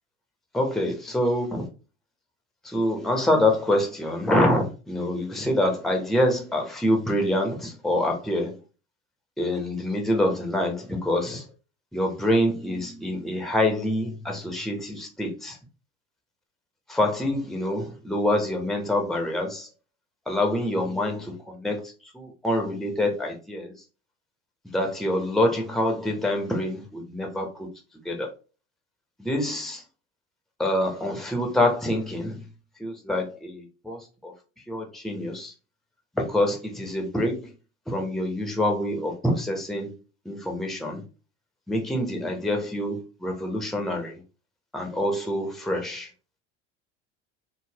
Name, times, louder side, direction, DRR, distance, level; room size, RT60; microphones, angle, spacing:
voice 1, 0.5-1.7 2.6-8.6 9.4-11.5 11.9-15.6 16.9-19.7 20.3-23.7 24.7-27.7 28.0-28.3 29.2-29.8 30.6-32.4 32.8-34.3 34.7-35.5 36.1-37.5 37.9-39.9 40.2-41.0 41.7-44.2 44.7-46.1, left 1 dB, ahead, 0.8 m, -26 dB
3.9 x 2.0 x 2.8 m
hypercardioid pair, 70°, 37 cm